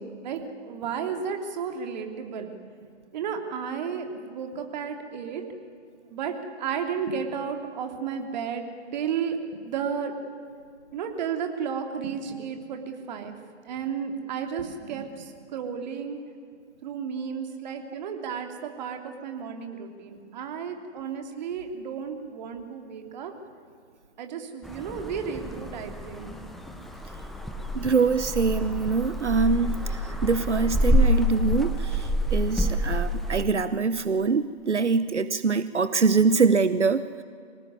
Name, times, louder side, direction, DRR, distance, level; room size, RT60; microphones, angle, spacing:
voice 1, 0.0-2.5 3.1-5.4 6.1-6.3 6.6-8.7 8.9-9.4 9.6-10.1 10.9-13.4 13.6-16.2 16.8-23.3 24.2-26.4, right 7 dB, 40° right, 5 dB, 3.1 m, -33 dB
sound 1, 24.6-33.5, equal, ahead, 0.5 m, -27 dB
voice 2, 27.7-37.2, right 4 dB, 85° right, 13 dB, 1.0 m, -24 dB
24.5 x 18.5 x 9.7 m, 2.3 s
figure-of-eight pair, 135°, 34 cm